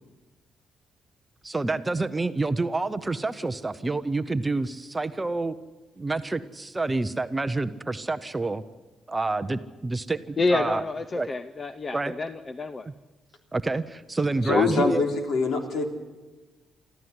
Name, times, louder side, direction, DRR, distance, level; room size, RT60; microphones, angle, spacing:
voice 1, 1.4-5.5 6.0-8.6 9.1-10.8 11.1-11.3 11.9-12.1 12.9-13.0 13.5-15.0, right 3 dB, 15° right, 10 dB, 0.7 m, -28 dB
voice 2, 10.4-12.9, left 3 dB, 25° left, 11 dB, 0.6 m, -28 dB
voice 3, 14.5-15.9, left 4 dB, 65° left, 4 dB, 3.5 m, -24 dB
25.0 x 14.5 x 9.6 m, 1.2 s
cardioid pair, 150°, 0 cm